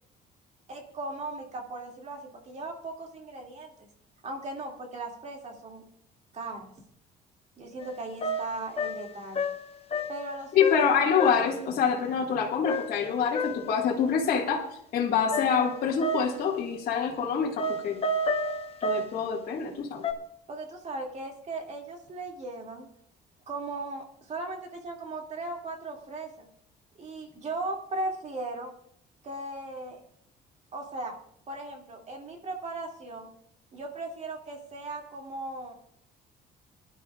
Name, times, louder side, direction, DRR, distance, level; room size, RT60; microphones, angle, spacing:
voice 1, 0.7-3.9 4.2-5.9 6.3-6.7 7.6-9.4 10.1-10.9 20.5-22.9 23.5-26.5 27.0-28.7 29.2-30.0 30.7-31.1 31.5-33.3 33.7-35.7, right 2 dB, 45° right, 2 dB, 2.5 m, -37 dB
sound 1, 7.8-7.9 8.2-10.3 10.6-10.9 11.2-11.6 12.6-13.7 15.3-16.5 17.6-19.2 20.0-20.1, left 1 dB, 35° left, 1.1 m, -31 dB
voice 2, 10.5-14.7 14.9-18.0 18.8-20.0, left 6 dB, 60° left, -3 dB, 1.9 m, -26 dB
22.5 x 11.5 x 2.4 m, 0.71 s
cardioid pair, 110°, 17 cm